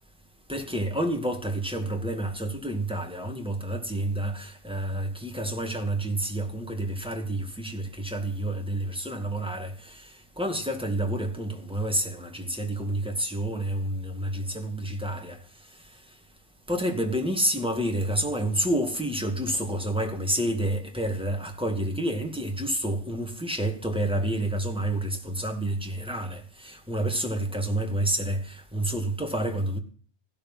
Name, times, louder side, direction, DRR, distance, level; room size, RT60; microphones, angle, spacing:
voice 1, 0.5-15.4 16.7-29.8, right 1 dB, 5° right, 2.2 m, -29 dB
15.5 x 12.5 x 5.6 m
omnidirectional pair, 1.1 m